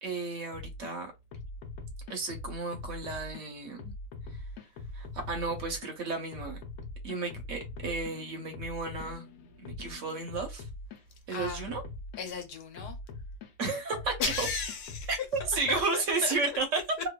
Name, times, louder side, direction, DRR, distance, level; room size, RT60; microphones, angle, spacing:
voice 1, 0.0-1.1 2.1-3.9 4.9-6.6 7.0-9.3 9.6-10.6 11.3-11.8 13.6-14.5 15.1-16.8, right 3 dB, 60° right, 1.0 m, -33 dB
sound 1, 0.5-0.9 1.3-3.4 3.8-5.9 6.3-11.0 11.4-12.3 12.8-13.5 13.9-15.8, left 2 dB, 70° left, 1.0 m, -42 dB
voice 2, 11.3-11.7 12.2-13.0 14.2-16.6, left 6 dB, 85° left, 1.3 m, -36 dB
2.9 x 2.2 x 2.2 m
omnidirectional pair, 1.7 m